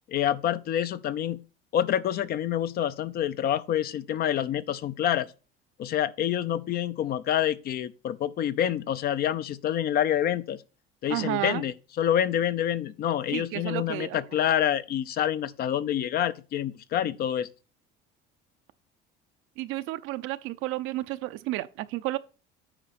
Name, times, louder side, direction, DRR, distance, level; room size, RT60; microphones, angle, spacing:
voice 1, 0.1-1.4 1.7-5.3 5.8-10.6 11.0-17.5, left 10 dB, 50° left, 0.6 m, -27 dB
voice 2, 11.1-11.6 13.3-14.2 19.6-22.2, right 17 dB, 75° right, 0.6 m, -31 dB
8.9 x 5.0 x 4.2 m
cardioid pair, 115°, 21 cm